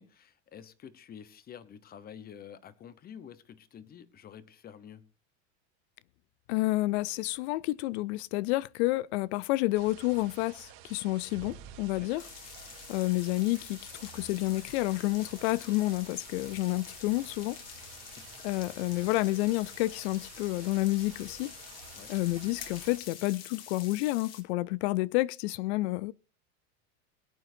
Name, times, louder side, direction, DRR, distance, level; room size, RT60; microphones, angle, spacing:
voice 1, 0.0-5.1 11.9-12.1 18.2-18.3 21.9-22.1, left 8 dB, 25° left, 1.0 m, -49 dB
voice 2, 6.5-12.3 12.9-17.6 18.4-21.5 22.1-26.1, left 19 dB, 70° left, 0.5 m, -29 dB
sound 1, 9.7-23.0, right 11 dB, 75° right, 2.8 m, -51 dB
sound 2, 12.2-24.4, left 9 dB, 50° left, 2.2 m, -48 dB
22.0 x 8.9 x 2.7 m
supercardioid pair, 130°, 34 cm